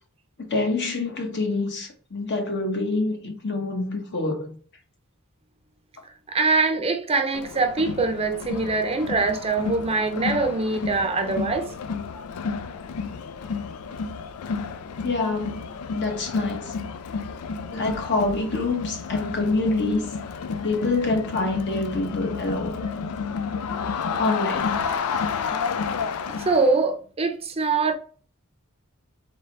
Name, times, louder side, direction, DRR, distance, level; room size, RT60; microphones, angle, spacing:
voice 1, 0.4-4.6 15.0-15.6 15.9-16.8 17.7-20.1 20.6-22.8 24.2-24.8, left 3 dB, 55° left, 1.0 m, -26 dB
voice 2, 6.3-11.7 26.4-27.9, right 3 dB, 30° right, 0.6 m, -23 dB
Crowd, 7.3-26.8, left 5 dB, 90° left, 0.4 m, -31 dB
3.8 x 3.5 x 3.3 m
head